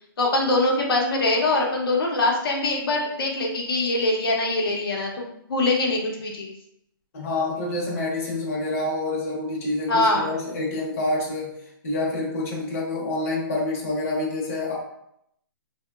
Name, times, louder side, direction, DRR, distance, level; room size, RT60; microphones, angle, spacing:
voice 1, 0.2-6.5 9.9-10.3, left 2 dB, 80° left, -1 dB, 0.7 m, -23 dB
voice 2, 7.1-11.5 11.8-14.7, left 2 dB, 40° left, -3 dB, 0.7 m, -27 dB
2.8 x 2.1 x 2.3 m, 0.76 s
hypercardioid pair, 165°, 12 cm